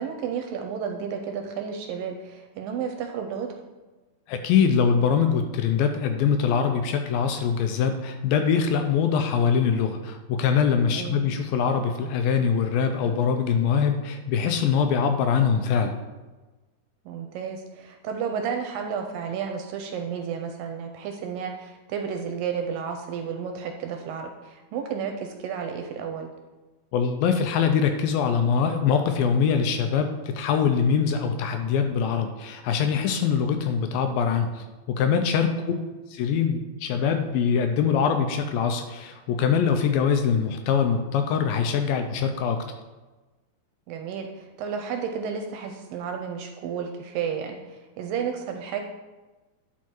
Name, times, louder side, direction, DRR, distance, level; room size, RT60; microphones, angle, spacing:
voice 1, 0.0-3.5 10.9-11.3 17.1-26.3 35.5-35.9 43.9-48.8, right 7 dB, 75° right, 4 dB, 2.2 m, -32 dB
voice 2, 4.3-16.0 26.9-35.7 36.1-42.6, left 6 dB, 80° left, 7 dB, 2.3 m, -23 dB
11.0 x 4.7 x 4.4 m, 1.2 s
omnidirectional pair, 4.4 m